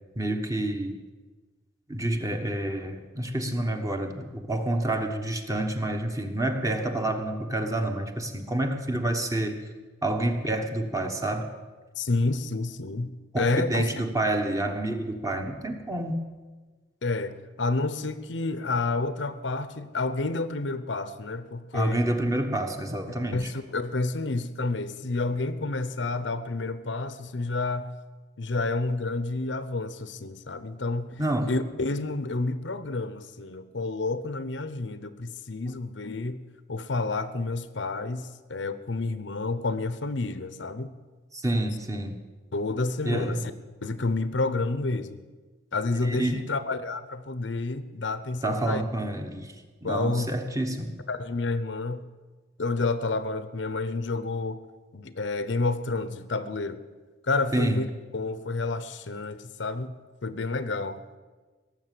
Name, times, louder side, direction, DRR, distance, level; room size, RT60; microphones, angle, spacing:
voice 1, 0.1-0.9 1.9-9.6 10.0-11.5 13.3-16.2 21.7-23.5 31.2-31.5 41.3-42.2 43.0-43.5 45.9-46.5 48.4-49.5 49.8-50.9 57.5-57.8, right 1 dB, 15° right, 5 dB, 1.2 m, -28 dB
voice 2, 12.0-13.9 17.0-22.0 23.3-27.9 28.4-31.2 31.5-36.4 36.7-40.9 42.5-43.5 43.8-45.2 45.7-48.8 49.8-50.3 51.1-52.0 52.6-54.6 54.9-56.8 57.3-59.9 60.2-61.0, left 3 dB, 70° left, 13 dB, 0.8 m, -29 dB
18.0 x 7.4 x 9.3 m, 1.3 s
head